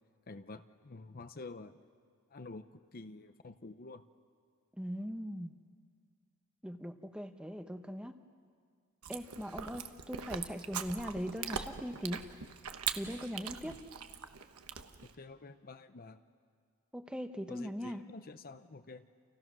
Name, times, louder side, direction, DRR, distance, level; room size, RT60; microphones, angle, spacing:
voice 1, 0.3-1.8 2.3-4.0 13.6-13.8 15.1-16.2 17.5-19.1, left 3 dB, 40° left, 10 dB, 0.7 m, -49 dB
voice 2, 4.8-5.5 6.6-8.1 9.1-12.3 12.9-13.8 16.9-18.0, equal, 5° right, 7 dB, 1.0 m, -40 dB
Chewing mastication, 9.0-15.2, right 7 dB, 80° right, 1.2 m, -42 dB
30.0 x 29.0 x 6.2 m, 2.1 s
head